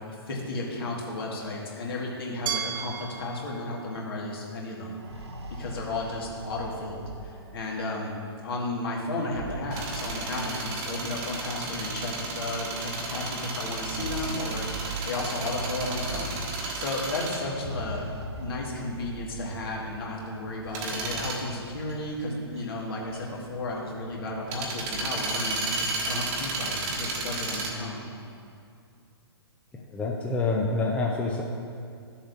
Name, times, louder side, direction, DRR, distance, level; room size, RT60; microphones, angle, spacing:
voice 1, 0.3-5.0 5.6-18.1 18.4-28.0, left 2 dB, 60° left, -2 dB, 1.8 m, -33 dB
Glass, 2.5-5.4, right 8 dB, 50° right, 0.7 m, -37 dB
sound 1, 4.9-7.7 9.1-10.8 11.8-11.9 12.2-12.3 13.6-16.7 17.3-19.9, right 2 dB, 75° right, 0.9 m, -40 dB
sound 2, 9.7-27.7, right 3 dB, 35° right, 1.3 m, -33 dB
voice 2, 29.9-31.4, left 3 dB, 10° left, -2 dB, 0.6 m, -27 dB
13.0 x 7.1 x 2.6 m, 2.4 s
figure-of-eight pair, 120°, 14 cm